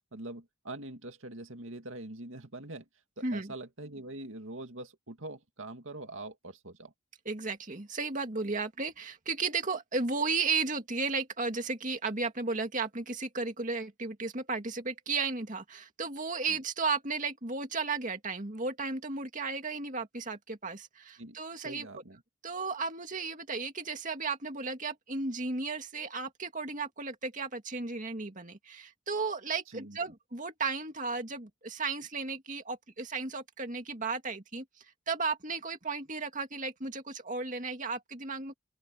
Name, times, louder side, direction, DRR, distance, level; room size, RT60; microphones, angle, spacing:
voice 1, 0.1-2.9 3.2-6.9 16.5-16.6 21.2-21.4 21.6-22.2 29.7-30.1, right 2 dB, 65° right, 2.3 m, -44 dB
voice 2, 3.2-3.5 7.3-21.9 22.4-38.6, right 4 dB, 35° right, 2.3 m, -34 dB
open air
head